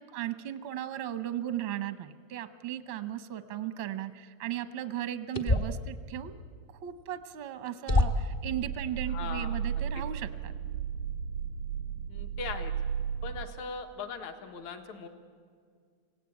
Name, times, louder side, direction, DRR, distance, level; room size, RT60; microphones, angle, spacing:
voice 1, 0.0-6.4 6.8-10.5, right 11 dB, 70° right, 11 dB, 1.1 m, -36 dB
sound 1, 5.3-5.8 7.2-7.3 7.9-8.4, left 1 dB, 45° left, 0.7 m, -25 dB
sound 2, 8.2-13.5, right 8 dB, 90° right, 2.3 m, -34 dB
voice 2, 9.1-9.6 10.0-10.1 12.1-12.7 13.2-15.1, left 5 dB, 75° left, 5 dB, 2.9 m, -39 dB
25.5 x 17.5 x 8.4 m, 2.1 s
omnidirectional pair, 3.3 m